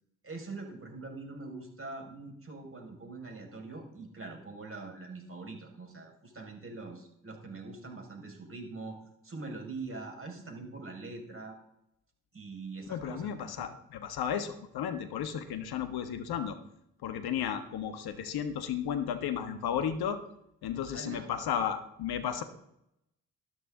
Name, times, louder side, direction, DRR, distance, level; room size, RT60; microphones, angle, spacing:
voice 1, 0.2-9.0 9.2-11.6 12.3-13.7 20.9-21.3, right 3 dB, 35° right, 2 dB, 5.6 m, -43 dB
voice 2, 12.9-16.6 17.0-20.2 20.6-22.4, left 8 dB, 65° left, 9 dB, 1.4 m, -33 dB
13.5 x 13.0 x 3.9 m, 0.78 s
hypercardioid pair, 40°, 40 cm